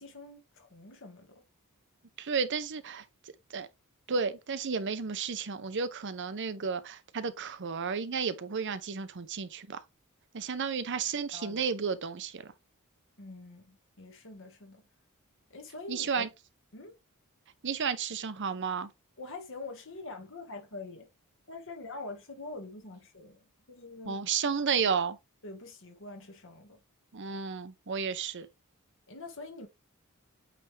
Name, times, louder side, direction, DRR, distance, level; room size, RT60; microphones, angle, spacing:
voice 1, 0.0-1.4 11.3-11.6 13.2-14.8 15.5-16.3 16.7-16.9 19.2-21.1 21.5-24.2 24.8-25.0 25.4-26.8 29.1-29.7, left 3 dB, 60° left, 1.7 m, -45 dB
voice 2, 2.2-3.0 3.5-3.7 4.1-9.8 10.3-12.5 15.9-16.3 17.6-18.9 24.1-25.2 27.1-28.5, right 6 dB, 55° right, 0.7 m, -32 dB
8.4 x 3.4 x 3.3 m
head